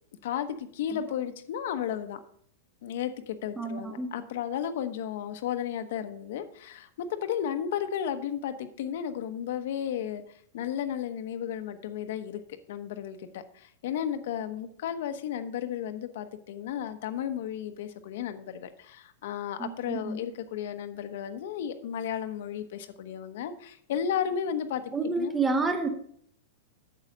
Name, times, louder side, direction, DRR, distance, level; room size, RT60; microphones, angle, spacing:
voice 1, 0.2-2.2 2.8-10.2 10.5-12.4 12.7-24.8 25.2-25.3, left 9 dB, 60° left, 8 dB, 1.0 m, -33 dB
voice 2, 3.6-4.1 19.6-20.2 24.9-25.9, right 3 dB, 10° right, 5 dB, 0.7 m, -29 dB
8.9 x 7.1 x 5.3 m, 0.63 s
supercardioid pair, 165°, 0 cm